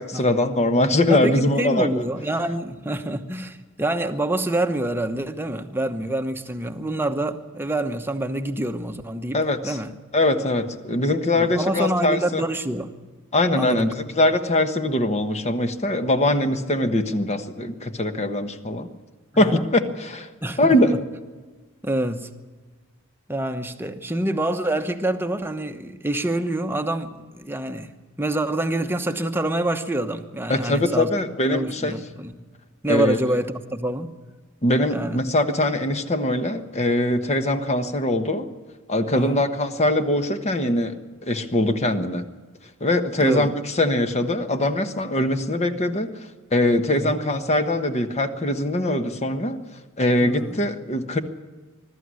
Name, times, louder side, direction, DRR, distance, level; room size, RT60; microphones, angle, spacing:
voice 1, 0.0-1.9 9.3-9.8 10.1-12.4 13.3-13.9 14.1-18.9 19.4-20.3 20.6-20.9 30.5-31.9 32.9-33.2 34.6-38.5 38.9-41.0 41.2-42.2 42.8-49.6 50.0-51.2, left 1 dB, 30° left, 8 dB, 1.2 m, -22 dB
voice 2, 1.1-9.9 11.0-12.9 13.5-14.1 19.3-19.6 20.4-20.8 21.8-22.3 23.3-31.1 31.5-32.3 32.8-34.1 34.9-35.2 39.1-39.4 43.2-43.5 46.9-47.1 50.2-50.6, right 1 dB, 10° right, 7 dB, 1.0 m, -26 dB
21.5 x 13.0 x 9.6 m, 1.4 s
head